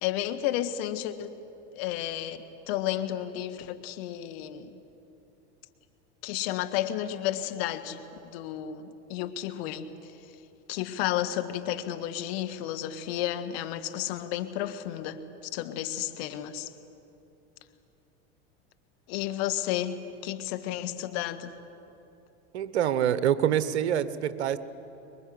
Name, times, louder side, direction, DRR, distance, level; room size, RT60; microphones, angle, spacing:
voice 1, 0.0-1.3 1.7-2.4 2.7-4.8 6.2-10.1 10.7-15.2 15.5-16.7 19.1-21.6, left 12 dB, 65° left, 9 dB, 1.7 m, -32 dB
voice 2, 22.5-24.6, right 10 dB, 80° right, 14 dB, 1.2 m, -26 dB
25.0 x 22.5 x 7.9 m, 2.9 s
hypercardioid pair, 90°, 33 cm